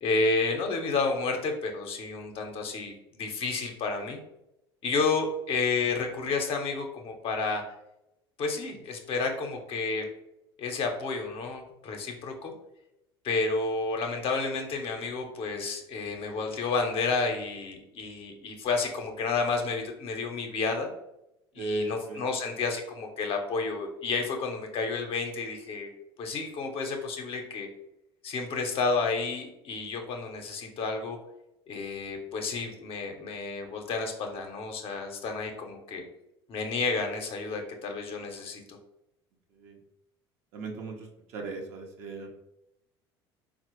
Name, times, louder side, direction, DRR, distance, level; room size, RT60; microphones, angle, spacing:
voice 1, 0.0-4.2 4.8-7.6 8.4-10.1 10.6-12.5 13.2-20.9 21.5-25.9 26.2-27.7 28.2-31.2 31.7-36.0 36.5-38.8, left 4 dB, 45° left, 3 dB, 0.6 m, -31 dB
voice 2, 21.6-22.2 39.5-39.8 40.5-42.5, right 1 dB, 60° right, 1 dB, 0.6 m, -36 dB
3.9 x 2.0 x 3.0 m, 0.86 s
hypercardioid pair, 70°, 13 cm